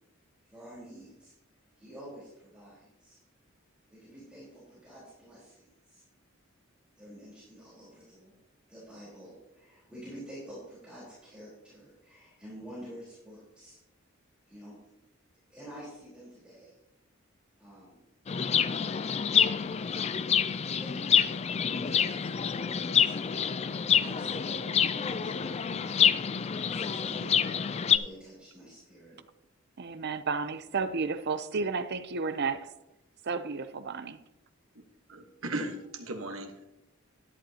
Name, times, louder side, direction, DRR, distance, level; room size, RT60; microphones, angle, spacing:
voice 1, 0.5-1.3 1.8-3.2 3.9-6.0 7.0-8.3 8.7-13.8 14.5-14.8 15.5-16.8 17.5-18.0 18.6-19.5 20.4-23.2 23.7-29.2, equal, 5° right, -9 dB, 4.1 m, -49 dB
Chirp tweet, 18.3-28.0, left 7 dB, 30° left, 0.4 m, -27 dB
voice 2, 29.8-32.7 33.2-34.2, right 4 dB, 55° right, 11 dB, 0.6 m, -32 dB
voice 3, 35.1-36.7, right 2 dB, 85° right, 5 dB, 1.3 m, -37 dB
11.5 x 11.0 x 2.9 m, 0.90 s
head